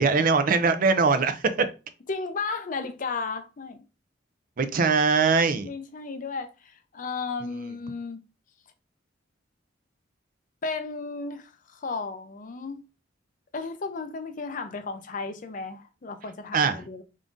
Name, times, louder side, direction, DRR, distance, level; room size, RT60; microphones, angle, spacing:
voice 1, 0.0-1.7 4.6-5.7 16.5-16.8, right 4 dB, 45° right, 0.4 m, -22 dB
voice 2, 2.1-3.8 5.6-8.2 10.6-12.8 13.5-17.0, left 4 dB, 45° left, 0.5 m, -34 dB
3.7 x 3.5 x 2.5 m
head